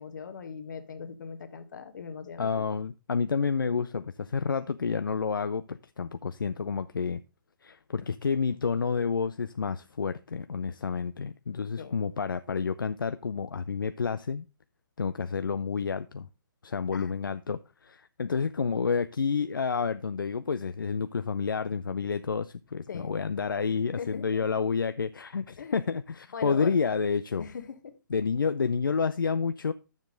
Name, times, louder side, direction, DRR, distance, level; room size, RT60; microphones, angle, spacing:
voice 1, 0.0-2.7 8.0-8.1 11.8-11.9 16.9-17.2 22.9-23.2 23.9-24.5 25.6-25.9 26.3-26.8 27.4-27.9, left 6 dB, 65° left, 1.5 m, -40 dB
voice 2, 2.4-7.2 7.6-14.5 15.0-16.3 16.6-27.4 28.1-29.7, left 5 dB, 85° left, 0.5 m, -29 dB
10.0 x 7.2 x 3.8 m
figure-of-eight pair, 135°, 11 cm